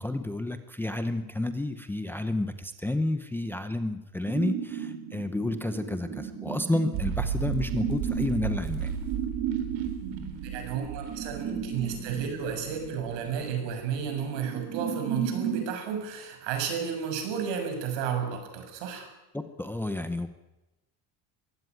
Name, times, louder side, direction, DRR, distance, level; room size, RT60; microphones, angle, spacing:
voice 1, 0.0-8.9 19.3-20.3, left 2 dB, 5° left, 8 dB, 0.7 m, -30 dB
sound 1, 4.3-15.7, right 7 dB, 35° right, 3.7 m, -35 dB
sound 2, 6.9-13.4 13.7-13.8, right 7 dB, 90° right, 4.2 m, -35 dB
voice 2, 10.4-19.1, right 7 dB, 75° right, 5 dB, 6.7 m, -32 dB
22.5 x 16.0 x 9.4 m, 1.0 s
cardioid pair, 175°, 44 cm